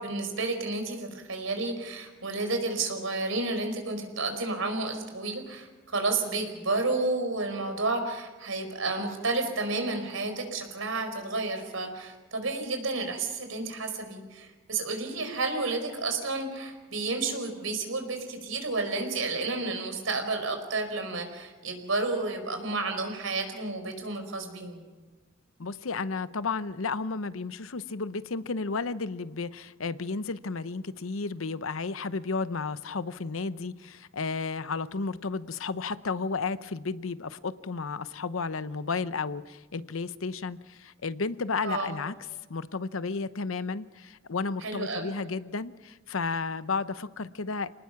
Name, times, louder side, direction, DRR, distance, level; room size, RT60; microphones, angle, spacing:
voice 1, 0.0-24.8 41.6-41.9 44.6-45.1, right 3 dB, 85° right, 6 dB, 4.8 m, -31 dB
voice 2, 25.6-42.1 42.5-47.7, left 4 dB, 85° left, 14 dB, 0.8 m, -33 dB
28.5 x 19.0 x 5.9 m, 1.3 s
head